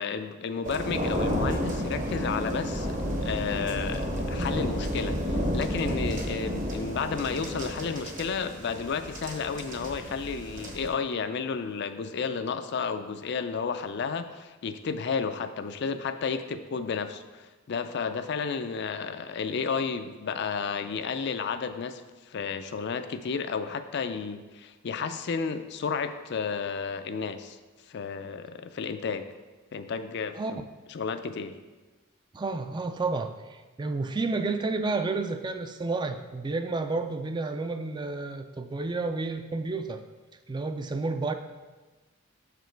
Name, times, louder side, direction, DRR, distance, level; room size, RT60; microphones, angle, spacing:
voice 1, 0.0-22.0 22.3-27.6 27.9-29.3 29.7-30.6 30.9-31.6, left 5 dB, 55° left, 10 dB, 0.4 m, -32 dB
sound 1, 0.6-10.9, equal, 40° right, 0.9 m, -31 dB
voice 2, 32.3-40.0 40.5-41.3, right 3 dB, 20° right, 8 dB, 0.3 m, -31 dB
6.4 x 5.0 x 4.5 m, 1.2 s
head